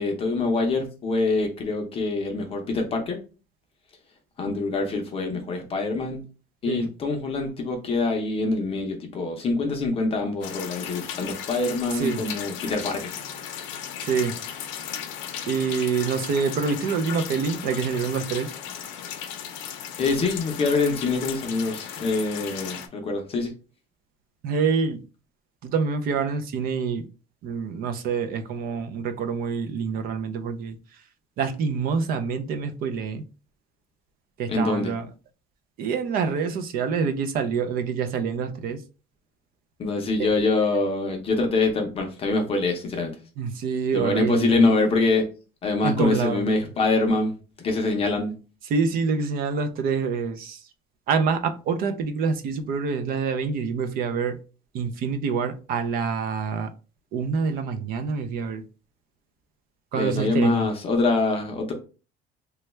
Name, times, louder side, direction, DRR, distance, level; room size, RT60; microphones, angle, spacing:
voice 1, 0.0-3.2 4.4-6.2 6.6-13.1 20.0-23.5 34.5-34.9 39.8-43.1 43.9-45.2 45.6-48.3 59.9-61.7, left 3 dB, 30° left, 0.6 m, -25 dB
sound 1, 10.4-22.9, left 9 dB, 80° left, 0.6 m, -36 dB
voice 2, 11.9-12.2 14.0-14.3 15.5-18.5 24.4-25.0 25.6-27.1 27.4-30.8 31.4-33.2 34.4-35.1 35.8-38.8 40.2-40.3 43.4-44.7 45.8-46.5 48.7-50.6 51.1-54.4 54.7-56.7 57.1-58.6 59.9-60.7, right 5 dB, 50° right, 0.4 m, -26 dB
3.2 x 2.2 x 3.0 m
cardioid pair, 170°, 19 cm